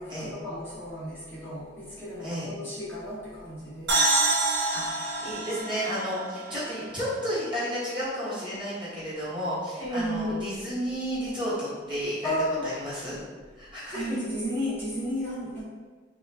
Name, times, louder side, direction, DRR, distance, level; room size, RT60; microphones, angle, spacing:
voice 1, 0.0-4.0 9.8-10.4 12.2-12.7 13.9-15.6, equal, 10° left, -11 dB, 0.9 m, -33 dB
voice 2, 2.2-2.5 4.7-12.3 12.6-13.2 13.6-14.2, equal, 25° right, -10 dB, 1.3 m, -32 dB
sound 1, 3.9-7.4, right 2 dB, 65° right, 0.6 m, -27 dB
3.7 x 2.4 x 3.3 m, 1.4 s
head